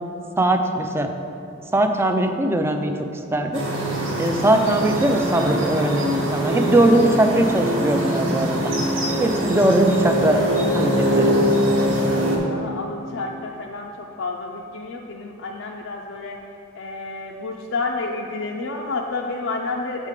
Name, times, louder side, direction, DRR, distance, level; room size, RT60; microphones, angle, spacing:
voice 1, 0.4-1.1 1.7-3.7 4.2-8.7 9.2-11.3, right 1 dB, 15° right, 5 dB, 0.4 m, -20 dB
sound 1, 3.5-12.4, right 1 dB, 85° right, 1.3 m, -23 dB
voice 2, 12.5-20.1, left 3 dB, 75° left, 0 dB, 0.4 m, -30 dB
7.3 x 3.6 x 6.5 m, 2.7 s
head